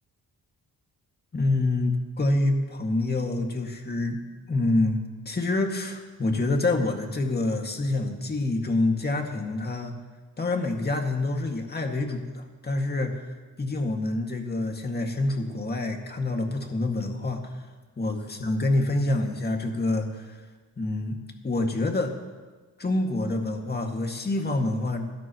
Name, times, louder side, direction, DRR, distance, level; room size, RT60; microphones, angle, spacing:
voice 1, 1.3-4.2 4.5-10.0 10.4-13.1 13.6-17.4 18.0-20.4 20.8-21.2 21.4-22.1 22.8-25.1, left 2 dB, 30° left, 2 dB, 2.1 m, -27 dB
27.0 x 13.0 x 3.1 m, 1.3 s
cardioid pair, 105°, 34 cm